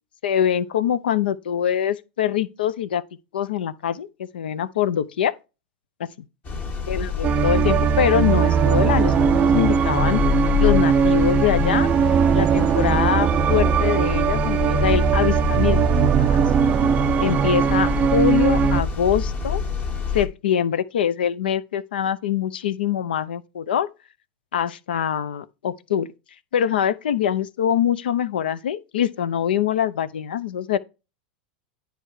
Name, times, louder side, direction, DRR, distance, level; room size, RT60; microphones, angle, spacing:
voice 1, 0.2-3.0 3.3-4.1 4.3-5.3 6.0-6.1 6.9-10.2 10.6-11.9 12.3-15.9 16.2-16.4 17.2-19.6 20.1-23.9 24.5-26.1 26.5-30.8, left 9 dB, 85° left, 0.6 m, -23 dB
sound 1, 6.4-20.3, left 5 dB, 40° left, 1.7 m, -26 dB
sound 2, 7.2-18.8, right 8 dB, 25° right, 0.3 m, -20 dB
9.9 x 3.3 x 4.8 m
hypercardioid pair, 120°, 5 cm